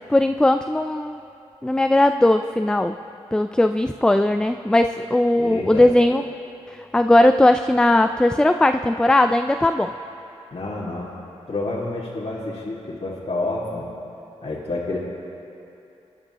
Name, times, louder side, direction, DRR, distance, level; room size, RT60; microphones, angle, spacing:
voice 1, 0.1-1.2 1.6-3.0 3.3-6.2 6.9-9.9, left 1 dB, 5° left, 8 dB, 0.3 m, -18 dB
voice 2, 5.4-5.9 10.5-11.1 11.5-13.9 14.4-15.0, left 2 dB, 50° left, -8 dB, 1.9 m, -29 dB
22.0 x 10.5 x 3.0 m, 2.8 s
cardioid pair, 45°, 13 cm